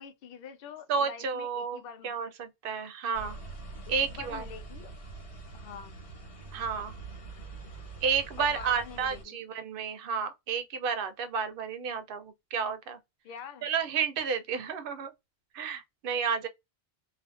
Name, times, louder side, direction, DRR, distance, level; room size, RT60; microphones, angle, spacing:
voice 1, 0.0-2.2 3.9-4.9 5.5-6.0 8.4-9.4 13.2-13.7, left 7 dB, 65° left, 0.7 m, -45 dB
voice 2, 0.9-3.4 3.9-4.4 6.5-7.0 8.0-13.0 13.6-15.1 15.5-16.5, right 6 dB, 65° right, 0.7 m, -31 dB
sound 1, 3.1-9.2, right 3 dB, 80° left, 1.5 m, -44 dB
2.5 x 2.4 x 2.4 m
omnidirectional pair, 1.1 m